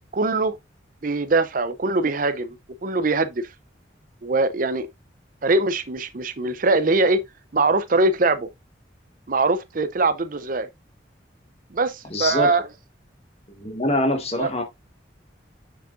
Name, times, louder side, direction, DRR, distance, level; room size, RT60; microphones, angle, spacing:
voice 1, 0.1-0.6 1.0-2.6 2.8-3.5 4.2-4.9 5.4-7.2 7.5-8.5 9.3-10.7 11.7-12.7 14.3-14.5, right 3 dB, 45° right, 0.6 m, -22 dB
voice 2, 12.1-12.5 13.6-14.6, left 1 dB, 35° left, 1.6 m, -24 dB
6.9 x 6.5 x 2.5 m
head